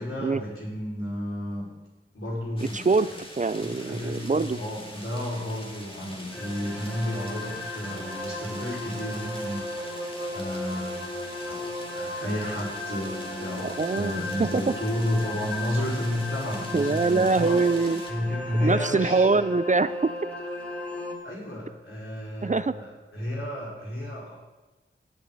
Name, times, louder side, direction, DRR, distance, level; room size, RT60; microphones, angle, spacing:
voice 1, 0.0-1.7 2.1-3.2 3.6-11.1 11.4-17.6 18.1-19.4 21.2-22.9 23.1-24.3, left 1 dB, 75° left, -6 dB, 5.4 m, -32 dB
sound 1, 2.6-18.1, left 1 dB, 25° left, 2.2 m, -44 dB
voice 2, 2.6-3.1 3.4-4.6 13.6-14.8 16.7-18.0 18.6-20.1 22.4-22.8, right 4 dB, 35° right, 15 dB, 0.4 m, -24 dB
sound 2, 6.3-21.1, left 1 dB, 5° left, 3.1 m, -36 dB
18.0 x 8.8 x 4.1 m, 1.1 s
wide cardioid pair, 60°, 21 cm